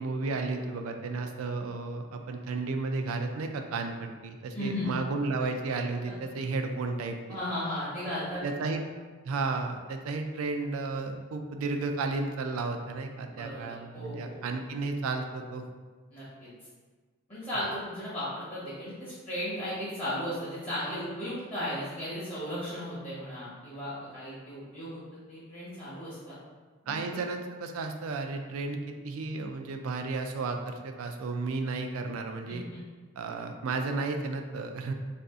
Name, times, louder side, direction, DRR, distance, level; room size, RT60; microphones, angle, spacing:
voice 1, 0.0-7.2 8.4-8.8 9.2-15.7 26.9-32.6 33.2-34.9, right 3 dB, 85° right, 5 dB, 0.3 m, -33 dB
voice 2, 4.5-4.9 7.3-8.7 13.3-14.4 16.1-16.5 17.3-26.4 26.8-27.2 32.5-32.8, left 1 dB, 30° left, -10 dB, 0.8 m, -36 dB
2.6 x 2.4 x 3.5 m, 1.4 s
head